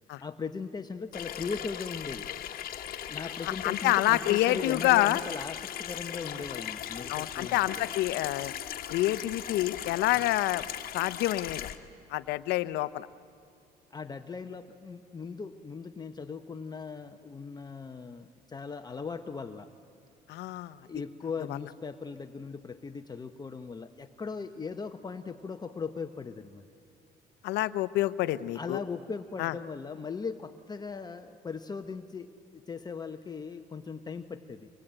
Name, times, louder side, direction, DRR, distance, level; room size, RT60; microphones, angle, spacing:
voice 1, 0.2-2.3 3.1-7.6 13.9-19.7 20.8-26.6 28.5-32.3 32.5-34.7, left 5 dB, 25° left, 7 dB, 0.8 m, -39 dB
Water tap faucet / Sink (filling or washing), 1.1-11.8, left 10 dB, 60° left, 1.3 m, -38 dB
voice 2, 3.4-5.2 7.1-8.5 8.9-10.6 10.9-11.7 12.1-13.1 20.3-20.8 21.5-21.7 27.4-28.8 29.4-29.5, left 16 dB, 85° left, 14 dB, 0.7 m, -27 dB
25.0 x 20.5 x 8.8 m, 2.7 s
cardioid pair, 110°, 17 cm